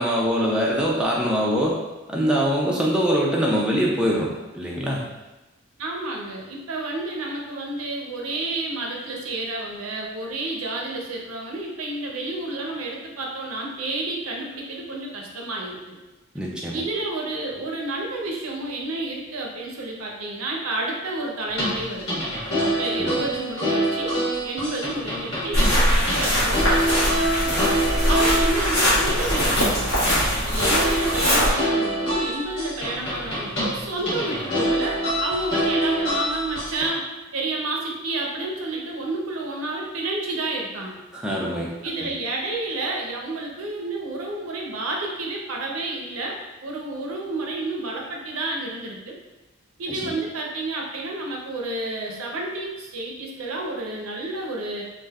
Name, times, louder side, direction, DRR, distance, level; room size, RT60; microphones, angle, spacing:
voice 1, 0.0-1.7 2.1-4.3 4.5-5.0 16.3-16.8 23.0-23.1 41.1-41.7, equal, 5° right, -4 dB, 0.3 m, -23 dB
voice 2, 5.8-16.0 16.7-22.2 22.6-24.2 24.4-27.5 28.1-29.9 30.4-37.0 37.3-41.0 41.8-49.2 49.8-54.8, right 2 dB, 85° right, 0 dB, 0.6 m, -30 dB
sound 1, 21.5-36.9, equal, 60° left, 1.3 m, -26 dB
sound 2, 25.5-31.5, equal, 80° left, 1.2 m, -21 dB
3.3 x 2.5 x 2.3 m, 1.1 s
head